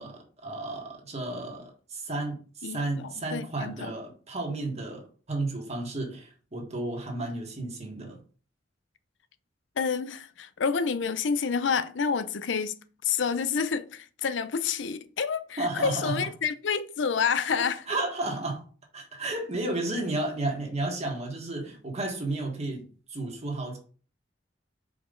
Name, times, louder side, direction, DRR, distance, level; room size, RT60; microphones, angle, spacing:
voice 1, 0.0-8.2 15.6-16.3 17.6-18.6 18.9-22.8 23.1-23.8, right 2 dB, 35° right, 1.5 m, -33 dB
voice 2, 3.3-3.9 9.8-12.8 13.0-17.8, left 6 dB, 70° left, 0.5 m, -28 dB
5.1 x 4.9 x 3.8 m
head